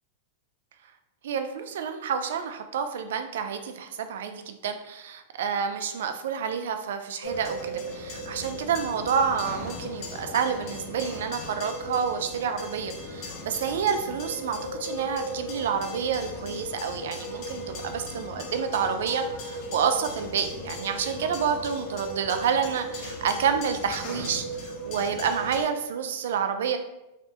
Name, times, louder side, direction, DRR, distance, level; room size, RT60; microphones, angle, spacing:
voice 1, 1.2-26.8, right 7 dB, 80° right, 7 dB, 0.3 m, -29 dB
sound 1, 7.2-25.6, equal, 40° left, 0.6 m, -36 dB
3.3 x 2.2 x 2.7 m, 0.96 s
supercardioid pair, 150°, 0 cm